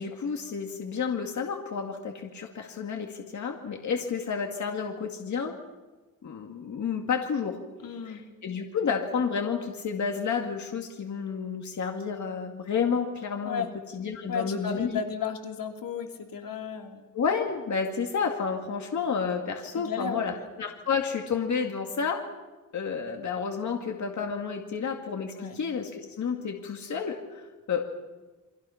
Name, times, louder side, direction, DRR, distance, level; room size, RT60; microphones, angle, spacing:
voice 1, 0.0-5.6 6.2-7.6 8.1-13.7 13.9-14.9 17.1-22.2 22.7-27.8, left 6 dB, 60° left, 2 dB, 2.3 m, -30 dB
voice 2, 7.8-8.2 13.4-13.7 14.3-17.1 19.7-20.4 25.3-25.6, left 6 dB, 80° left, 3 dB, 3.0 m, -34 dB
29.5 x 24.5 x 5.8 m, 1.2 s
wide cardioid pair, 140°, 33 cm